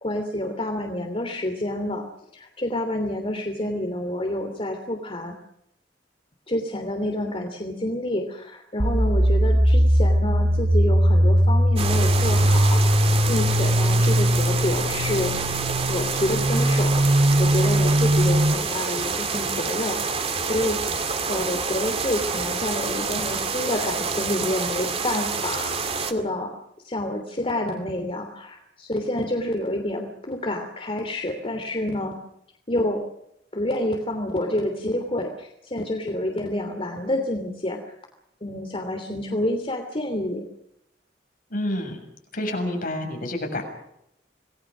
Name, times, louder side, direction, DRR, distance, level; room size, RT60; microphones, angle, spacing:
voice 1, 0.0-2.0 2.3-5.3 6.5-15.3 15.9-20.8 21.3-26.6 26.8-32.1 32.7-33.0 33.5-37.8 38.4-40.4, left 1 dB, 35° left, 3 dB, 3.0 m, -28 dB
sound 1, 8.8-18.5, equal, 50° right, 6.1 m, -20 dB
sound 2, 11.8-26.1, right 5 dB, 35° right, 2.3 m, -28 dB
voice 2, 41.5-42.0 42.3-43.6, left 1 dB, 55° left, 3 dB, 6.8 m, -28 dB
27.5 x 19.5 x 6.3 m, 0.78 s
head